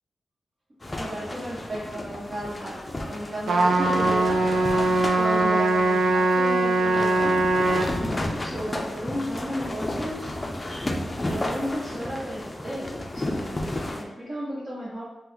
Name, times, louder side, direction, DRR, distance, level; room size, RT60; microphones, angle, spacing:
sound 1, 0.8-14.0, left 1 dB, 25° left, 0.4 m, -32 dB
voice 1, 0.9-2.7 3.1-4.4 5.1-7.4 8.4-10.3 11.2-13.6 13.9-15.0, equal, 45° right, -10 dB, 1.1 m, -33 dB
Trumpet, 3.5-7.9, right 2 dB, 85° right, 0.4 m, -21 dB
2.9 x 2.1 x 3.8 m, 1.0 s
wide cardioid pair, 90°, 0 cm